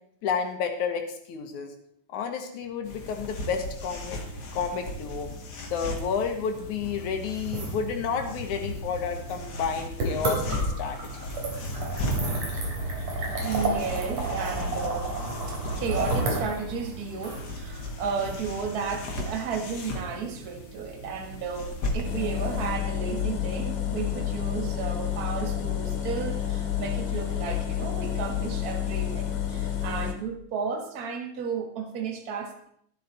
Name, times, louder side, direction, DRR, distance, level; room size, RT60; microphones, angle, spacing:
voice 1, 0.2-1.7 2.1-4.2 4.5-5.3 5.7-11.0, left 6 dB, 75° left, 5 dB, 2.7 m, -31 dB
sound 1, 2.8-22.7, left 1 dB, 40° left, 1.7 m, -37 dB
sound 2, 7.3-19.2, right 2 dB, 55° right, 4.3 m, -32 dB
voice 2, 13.4-15.2 15.5-32.7, right 6 dB, 40° right, 4 dB, 1.5 m, -33 dB
sound 3, 22.0-30.1, left 10 dB, 90° left, 3.0 m, -29 dB
12.0 x 11.5 x 4.2 m, 0.66 s
omnidirectional pair, 3.5 m